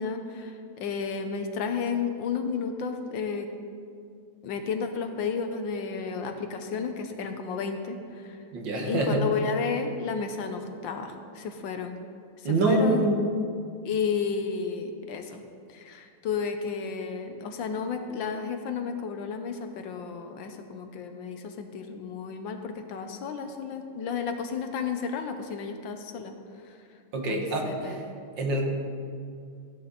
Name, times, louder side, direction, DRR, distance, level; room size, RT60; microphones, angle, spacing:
voice 1, 0.0-3.5 4.4-8.4 8.8-11.9 12.4-13.1 13.8-15.4 15.7-26.3 26.6-26.7 27.3-28.0, left 5 dB, 70° left, 6 dB, 1.5 m, -32 dB
voice 2, 8.5-9.2 12.4-13.2 27.1-28.1 28.4-28.6, right 2 dB, 65° right, 1 dB, 2.2 m, -25 dB
14.5 x 10.5 x 4.1 m, 2.4 s
omnidirectional pair, 2.2 m